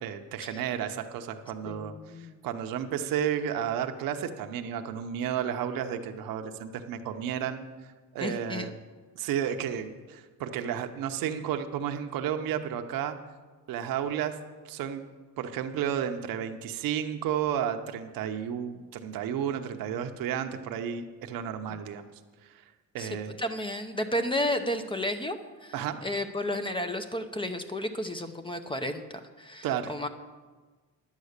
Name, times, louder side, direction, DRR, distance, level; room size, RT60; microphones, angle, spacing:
voice 1, 0.0-1.9 2.4-7.7 8.1-8.7 9.2-13.2 13.7-14.3 14.6-15.1 15.4-22.1 22.9-23.3 25.7-26.0 29.6-29.9, right 9 dB, 65° right, 6 dB, 0.9 m, -32 dB
voice 2, 1.7-2.4 8.2-8.7 21.7-21.8 23.0-23.1 23.4-25.7 26.0-30.1, left 1 dB, 15° left, 8 dB, 0.7 m, -32 dB
10.5 x 8.4 x 6.6 m, 1.4 s
cardioid pair, 110°, 36 cm